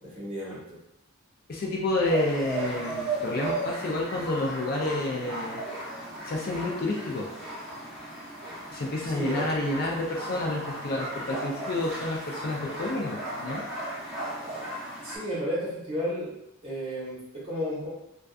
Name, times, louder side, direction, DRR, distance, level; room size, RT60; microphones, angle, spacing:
voice 1, 0.0-0.8 9.0-9.5 15.0-16.3 16.6-17.9, equal, 25° right, -8 dB, 0.9 m, -33 dB
voice 2, 1.5-5.7 6.3-7.3 8.7-13.6, left 2 dB, 45° left, -1 dB, 0.3 m, -29 dB
sound 1, 2.0-15.2, right 2 dB, ahead, 0.9 m, -36 dB
2.6 x 2.3 x 2.3 m, 0.87 s
head